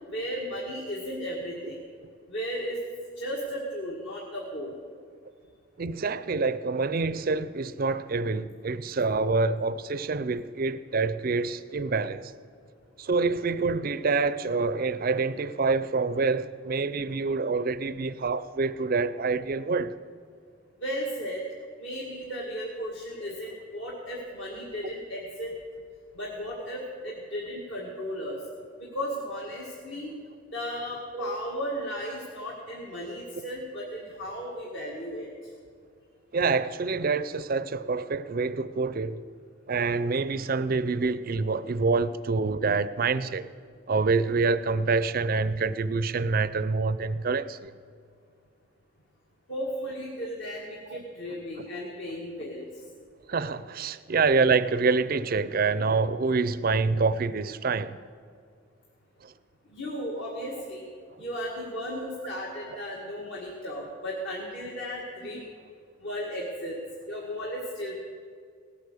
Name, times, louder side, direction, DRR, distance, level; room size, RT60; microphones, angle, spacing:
voice 1, 0.1-1.8 2.3-2.8 3.2-4.8 20.8-21.4 21.8-25.5 26.2-28.4 28.9-30.1 30.5-35.3 49.5-52.7 59.7-60.9 61.2-65.5 66.0-66.8 67.1-68.0, equal, 60° left, 1.9 m, -35 dB
voice 2, 5.8-12.3 13.0-19.9 31.1-31.4 36.3-39.2 39.7-43.5 43.9-47.7 50.9-51.0 51.6-51.7 53.3-58.0 59.2-59.3, right 4 dB, 45° right, 0.5 m, -26 dB
18.5 x 8.4 x 6.6 m
head